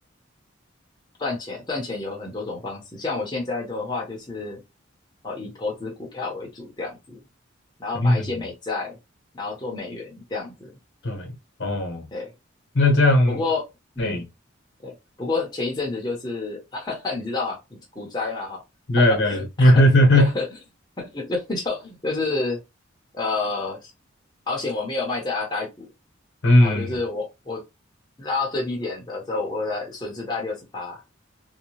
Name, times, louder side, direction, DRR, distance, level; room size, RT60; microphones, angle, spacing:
voice 1, 1.2-4.6 5.2-7.2 7.8-9.0 9.3-10.7 12.1-12.3 13.3-13.6 14.0-14.2 14.8-14.9 15.2-18.6 19.0-19.7 20.2-20.5 21.0-22.6 23.1-23.9 24.5-25.9 26.6-27.6 28.2-31.0, left 3 dB, 20° left, 0.7 m, -29 dB
voice 2, 7.9-8.3 11.0-11.3 11.6-12.1 12.7-13.4 14.0-14.3 18.9-20.3 26.4-26.9, left 1 dB, 60° left, 0.9 m, -17 dB
2.7 x 2.2 x 2.9 m
head